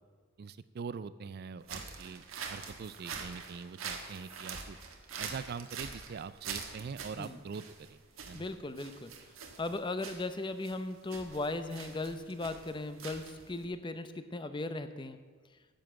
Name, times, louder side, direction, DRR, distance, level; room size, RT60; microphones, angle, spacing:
voice 1, 0.4-2.2 2.5-4.8 5.2-8.4, right 6 dB, 50° right, 15 dB, 0.4 m, -43 dB
sound 1, 1.6-13.7, right 5 dB, 80° right, 1.4 m, -45 dB
voice 2, 8.3-9.1 9.6-15.2, left 2 dB, 25° left, 10 dB, 0.6 m, -37 dB
10.5 x 7.3 x 7.6 m, 1.5 s
head